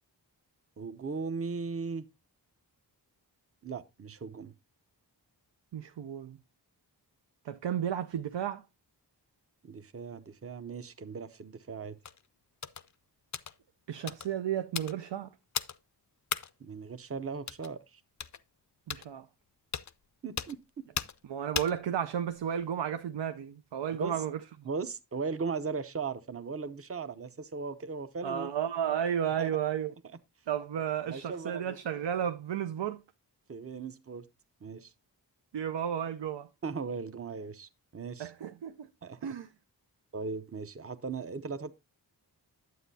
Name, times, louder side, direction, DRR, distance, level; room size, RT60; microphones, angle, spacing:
voice 1, 0.8-2.1 3.6-4.5 9.6-12.0 16.6-18.0 20.2-20.6 24.0-24.2 24.6-28.5 29.4-29.5 31.0-31.8 33.5-34.2 34.6-34.9 36.6-38.3 39.0-39.3 40.1-41.8, right 5 dB, 35° right, 0.7 m, -38 dB
voice 2, 5.7-6.4 7.4-8.6 13.9-15.3 18.9-19.3 21.3-24.4 28.2-29.9 30.5-33.0 35.5-36.5 38.2-38.9 39.2-39.5, right 9 dB, 80° right, 0.6 m, -33 dB
sound 1, 12.0-12.2 12.6-12.9 13.3-13.5 14.1-14.3 14.7-15.0 15.5-15.8 16.3-16.5 17.5-17.7 18.2-18.4 18.9-19.1 19.7-19.9 20.4-20.5 20.9-21.2 21.5-21.8 22.3-22.6, left 7 dB, 45° left, 0.5 m, -36 dB
9.4 x 8.1 x 2.7 m
wide cardioid pair, 90°, 42 cm